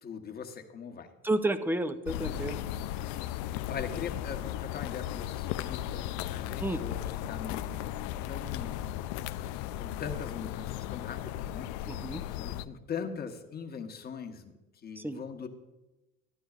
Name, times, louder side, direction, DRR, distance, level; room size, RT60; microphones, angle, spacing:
voice 1, 0.0-1.1 3.1-3.2 3.7-8.9 9.4-12.0 12.3-14.5 14.8-15.5, left 6 dB, 30° left, 4 dB, 1.1 m, -41 dB
voice 2, 1.2-2.6 6.6-6.8 11.9-12.2 15.0-15.2, right 1 dB, 5° right, 11 dB, 0.5 m, -31 dB
sound 1, 2.1-12.6, left 12 dB, 70° left, 0.4 m, -36 dB
13.0 x 9.8 x 2.4 m, 1.1 s
supercardioid pair, 95°, 30 cm